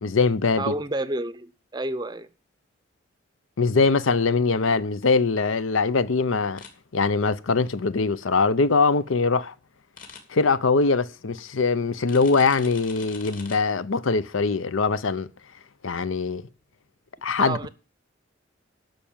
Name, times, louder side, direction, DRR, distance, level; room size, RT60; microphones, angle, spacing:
voice 1, 0.0-0.7 3.6-6.6 6.9-9.5 10.3-15.3 15.8-16.4 17.2-17.7, left 4 dB, 85° left, 0.7 m, -22 dB
voice 2, 0.6-2.3 17.4-17.7, right 2 dB, 20° right, 0.6 m, -29 dB
sound 1, 6.6-6.7 10.0-10.2 12.1-13.6, left 6 dB, 45° left, 2.4 m, -43 dB
11.5 x 6.3 x 7.2 m
head